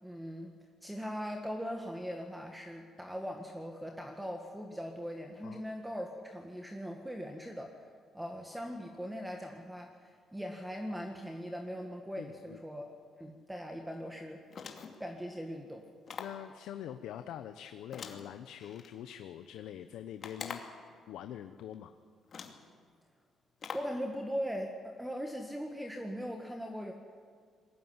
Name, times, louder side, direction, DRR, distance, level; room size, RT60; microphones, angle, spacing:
voice 1, 0.0-0.5 0.8-7.9 8.1-14.4 15.0-15.9 23.7-26.9, equal, 5° right, 3 dB, 1.9 m, -40 dB
voice 2, 12.2-12.6 16.2-20.6 21.1-21.9, left 10 dB, 85° left, 9 dB, 0.9 m, -44 dB
sound 1, 14.5-15.1 16.1-16.5 17.9-18.9 20.2-20.9 21.7-21.8 22.3-22.7 23.6-24.0, left 6 dB, 50° left, 2.5 m, -44 dB
21.5 x 18.0 x 9.7 m, 2.1 s
cardioid pair, 90°, 0 cm